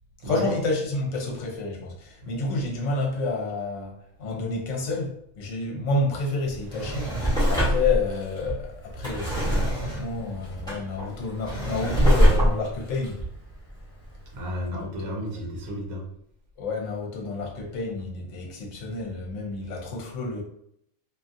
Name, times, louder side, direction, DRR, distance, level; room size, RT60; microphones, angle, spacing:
voice 1, 0.2-13.2 14.7-15.2 16.6-20.4, left 3 dB, 65° left, 0 dB, 1.0 m, -29 dB
Drawer open or close, 6.5-14.2 14.6-14.7, equal, 5° left, 0.8 m, -24 dB
voice 2, 14.3-16.0, equal, 75° right, -1 dB, 1.1 m, -32 dB
2.6 x 2.4 x 2.5 m, 0.71 s
omnidirectional pair, 1.5 m